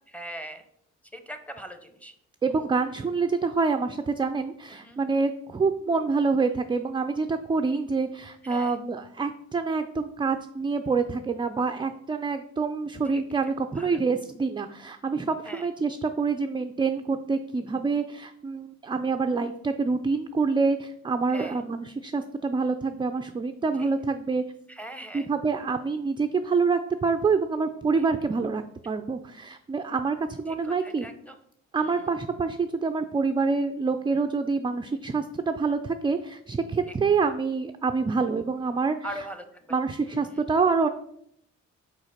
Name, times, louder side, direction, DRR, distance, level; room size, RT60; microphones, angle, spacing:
voice 1, 0.1-0.6 1.1-2.1 2.6-2.7 4.7-5.0 8.4-8.8 13.1-13.2 13.8-13.9 15.4-15.7 21.3-21.6 23.8-23.9 24.7-25.3 30.5-30.6 30.8-31.3 31.8-32.0 36.9-37.0 39.0-39.4, right 1 dB, 5° left, 7 dB, 0.8 m, -40 dB
voice 2, 2.4-24.4 25.1-31.1 31.7-39.3 39.7-40.9, right 4 dB, 15° right, 7 dB, 0.3 m, -26 dB
5.0 x 4.1 x 5.6 m, 0.72 s
cardioid pair, 90°, 30 cm